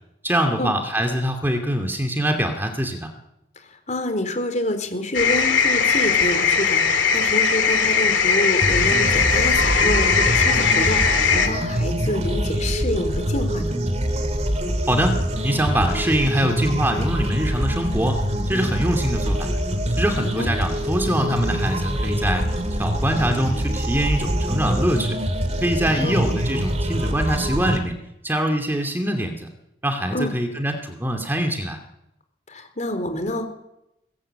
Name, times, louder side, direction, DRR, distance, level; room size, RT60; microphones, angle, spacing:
voice 1, 0.2-3.1 14.9-15.2 15.4-19.5 19.9-22.4 22.7-25.2 25.6-27.9 28.2-29.5 29.8-31.8, equal, 10° right, 4 dB, 2.6 m, -23 dB
voice 2, 3.6-13.7 20.4-20.5 26.0-26.3 30.1-30.3 32.5-33.5, left 1 dB, 40° left, 7 dB, 4.1 m, -27 dB
sound 1, 5.1-11.5, left 5 dB, 85° left, 3.0 m, -19 dB
sound 2, 8.6-27.8, equal, 35° right, 2.8 m, -24 dB
23.0 x 20.0 x 8.9 m, 0.87 s
head